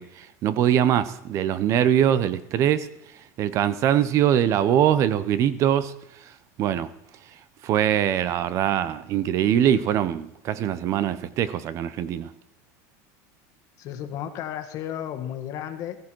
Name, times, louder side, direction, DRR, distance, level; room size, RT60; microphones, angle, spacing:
voice 1, 0.0-2.9 3.4-5.9 6.6-6.9 7.6-12.3, right 10 dB, 40° right, 0.7 m, -22 dB
voice 2, 13.8-16.0, left 10 dB, 40° left, 1.6 m, -33 dB
14.5 x 14.0 x 4.6 m
supercardioid pair, 155°, 8 cm